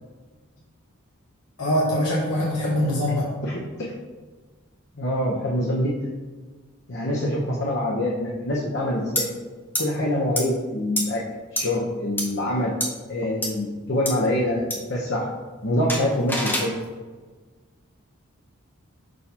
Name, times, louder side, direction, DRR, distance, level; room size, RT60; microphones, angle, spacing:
voice 1, 1.6-3.3, equal, 90° left, -5 dB, 1.1 m, -23 dB
voice 2, 5.0-5.9 6.9-9.3 9.8-11.2 11.5-12.7 13.1-15.2 15.6-16.7, left 1 dB, 50° left, -3 dB, 0.8 m, -25 dB
sound 1, 9.2-9.3 9.7-9.8 10.4-10.5 11.0-11.1 11.6-11.7 12.2-12.3 12.8-12.9 13.4-13.5 14.1-14.2 14.7-14.8 15.9-16.7, left 1 dB, 10° left, 0.7 m, -25 dB
6.4 x 5.3 x 2.9 m, 1.3 s
head